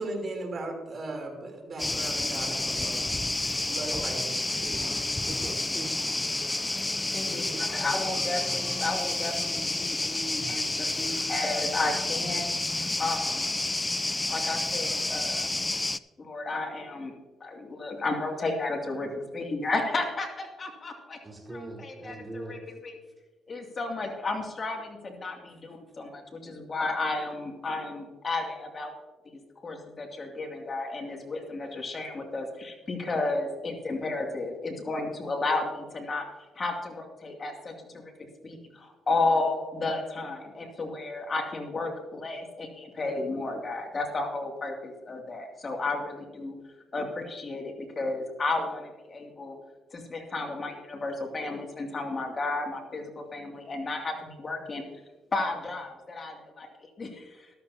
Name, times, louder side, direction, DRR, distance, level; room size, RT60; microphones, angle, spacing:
voice 1, 0.0-3.0 3.6-4.4 4.6-4.9, right 2 dB, 40° right, 1 dB, 3.3 m, -37 dB
sound 1, 1.8-16.0, left 2 dB, 15° left, 0.4 m, -30 dB
voice 2, 3.9-4.3 5.2-6.0 7.2-8.9 10.4-10.7 21.2-22.6 25.5-25.6, right 1 dB, 20° right, -3 dB, 4.2 m, -42 dB
voice 3, 7.1-12.5 13.0-13.5 14.3-15.6 16.2-17.1 17.4-21.2 21.5-22.6 22.8-22.9 23.5-28.9 29.6-36.3 36.6-38.1 38.4-46.5 46.9-49.6 49.9-54.8 55.3-57.5, left 3 dB, 35° left, 2 dB, 2.5 m, -33 dB
13.5 x 12.5 x 2.8 m, 1.3 s
cardioid pair, 90°, 0 cm